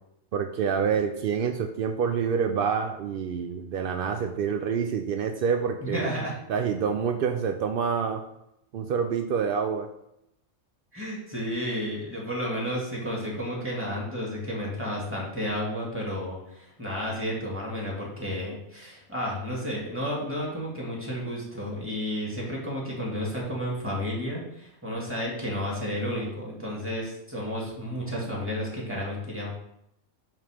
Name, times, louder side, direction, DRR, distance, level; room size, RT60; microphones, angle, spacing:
voice 1, 0.3-6.1 6.5-8.2 8.7-9.9, right 6 dB, 80° right, 5 dB, 0.5 m, -27 dB
voice 2, 5.8-6.3 10.9-29.5, equal, 10° right, -4 dB, 1.9 m, -32 dB
9.1 x 3.1 x 5.0 m, 0.81 s
omnidirectional pair, 1.5 m